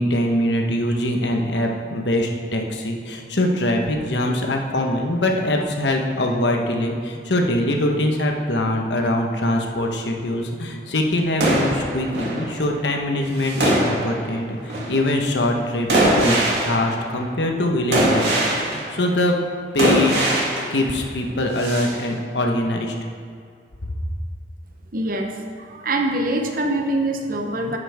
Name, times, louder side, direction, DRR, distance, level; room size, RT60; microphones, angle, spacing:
voice 1, 0.0-18.3 18.6-19.3 19.7-22.9, left 1 dB, 80° left, 2 dB, 1.2 m, -23 dB
sound 1, 11.4-12.7 13.3-14.4 14.7-15.1 15.9-17.1 17.9-19.1 19.8-20.8 21.5-22.0, right 1 dB, 75° right, 2.5 m, -21 dB
voice 2, 24.9-27.8, right 1 dB, 55° right, 3 dB, 0.9 m, -24 dB
10.5 x 8.6 x 3.6 m, 2.2 s
head